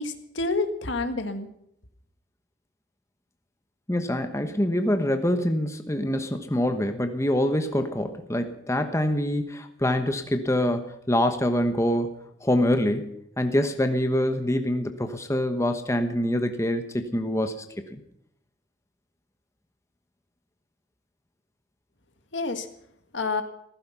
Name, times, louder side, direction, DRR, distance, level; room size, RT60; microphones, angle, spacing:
voice 1, 0.0-1.5 22.3-22.7 23.1-23.4, left 3 dB, 75° left, 8 dB, 1.8 m, -28 dB
voice 2, 3.9-12.1 12.4-17.6 17.9-18.0, left 1 dB, 15° left, 7 dB, 1.2 m, -25 dB
16.0 x 15.0 x 5.7 m, 0.76 s
head